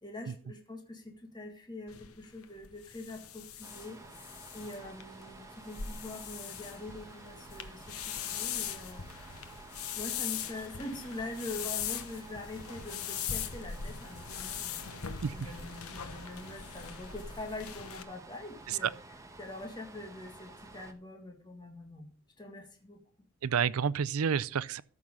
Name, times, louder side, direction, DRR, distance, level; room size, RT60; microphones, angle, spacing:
voice 1, 0.0-9.1 9.9-18.9 19.4-22.1 22.4-23.0, left 2 dB, 20° left, 1.8 m, -44 dB
sound 1, 1.9-18.0, left 8 dB, 80° left, 1.0 m, -41 dB
sound 2, 3.6-20.9, right 3 dB, 15° right, 1.1 m, -52 dB
voice 2, 23.4-24.8, right 7 dB, 80° right, 0.5 m, -29 dB
13.5 x 6.1 x 5.4 m
head